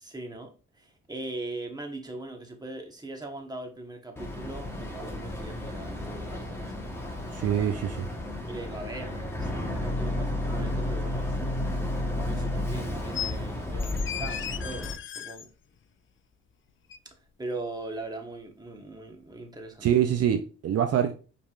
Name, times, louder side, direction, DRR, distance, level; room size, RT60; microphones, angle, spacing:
voice 1, 0.0-7.8 8.5-15.5 17.4-19.9, right 2 dB, 15° right, 2 dB, 1.1 m, -40 dB
Boat Water vehicle, 4.2-14.9, left 1 dB, 10° left, 1.2 m, -32 dB
voice 2, 7.3-8.0 19.8-21.1, right 9 dB, 55° right, 6 dB, 0.5 m, -24 dB
sound 1, 13.1-13.3 13.8-15.5 16.9-17.0, left 9 dB, 40° left, 0.4 m, -35 dB
5.3 x 3.4 x 2.5 m, 0.34 s
cardioid pair, 90°, 30 cm